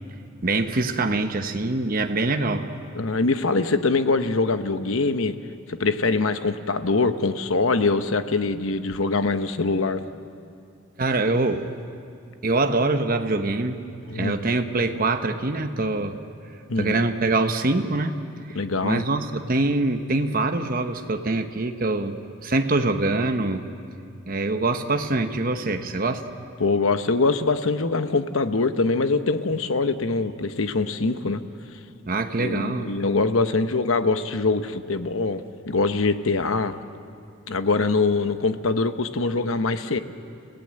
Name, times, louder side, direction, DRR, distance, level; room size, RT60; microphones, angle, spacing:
voice 1, 0.4-2.7 11.0-11.7 12.4-13.8 14.1-16.2 16.8-18.2 18.5-18.6 18.8-23.6 24.3-26.3 32.0-32.9, right 2 dB, 45° right, 6 dB, 1.0 m, -24 dB
voice 2, 2.9-5.4 5.7-10.0 14.1-14.3 16.7-17.1 18.5-19.0 26.6-31.4 32.4-36.8 37.5-40.0, left 3 dB, 75° left, 10 dB, 1.0 m, -23 dB
30.0 x 17.0 x 7.7 m, 2.5 s
head